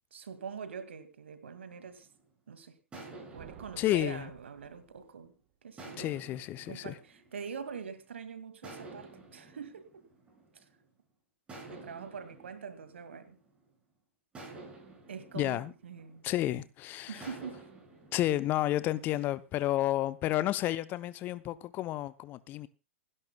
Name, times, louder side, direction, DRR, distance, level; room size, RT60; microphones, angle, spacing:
voice 1, 0.1-2.1 2.5-5.3 5.6-6.1 6.7-10.0 10.5-10.6 11.6-13.4 15.1-16.2 17.1-17.6, right 6 dB, 65° right, 2.1 m, -44 dB
sound 1, 1.7-2.3 2.9-5.2 5.8-7.9 8.6-10.9 11.5-13.7 14.3-16.6 17.2-19.5, right 2 dB, 15° right, 6.8 m, -51 dB
sound 2, 3.3-5.3, right 11 dB, 35° right, 1.3 m, -54 dB
voice 2, 3.8-4.3 6.0-7.0 15.4-15.7 16.2-17.3 18.1-22.7, left 14 dB, 30° left, 0.6 m, -31 dB
29.0 x 11.0 x 2.2 m
figure-of-eight pair, 110°, 7 cm